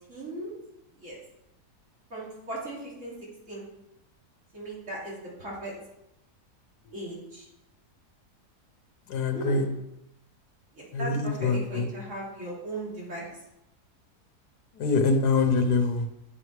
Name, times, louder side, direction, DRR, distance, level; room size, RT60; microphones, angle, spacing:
voice 1, 0.1-0.5 0.9-1.2 2.1-3.1 3.5-3.7 4.5-5.7 6.9-7.5 9.3-9.7 10.7-13.3, right 1 dB, 45° right, -5 dB, 3.3 m, -37 dB
voice 2, 9.1-9.6 10.9-11.9 14.8-16.0, left 4 dB, 80° left, 6 dB, 1.7 m, -24 dB
8.8 x 7.1 x 4.8 m, 0.87 s
omnidirectional pair, 1.7 m